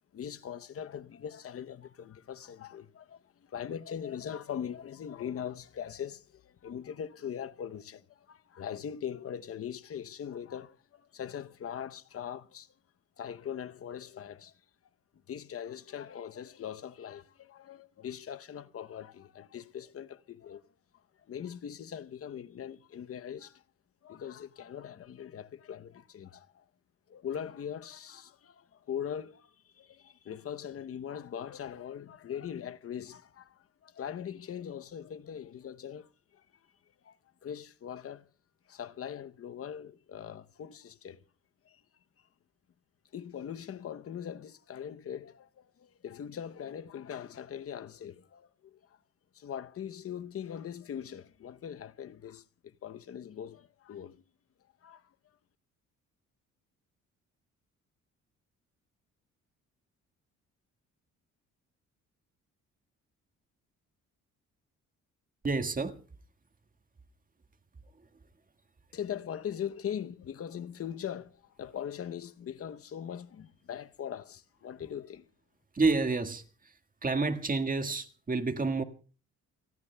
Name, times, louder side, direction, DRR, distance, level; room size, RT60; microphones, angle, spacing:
voice 1, 0.1-12.7 13.2-14.5 15.3-20.6 21.3-23.6 24.0-26.6 27.1-36.4 37.0-37.2 37.4-38.3 38.7-41.2 41.6-41.8 43.1-49.0 49.3-54.2 54.8-55.1 68.9-75.3, left 9 dB, 50° left, 0.8 m, -41 dB
voice 2, 65.4-66.0 75.7-76.4 77.0-78.8, right 3 dB, 30° right, 1.7 m, -29 dB
29.0 x 18.5 x 2.3 m
cardioid pair, 90°, 30 cm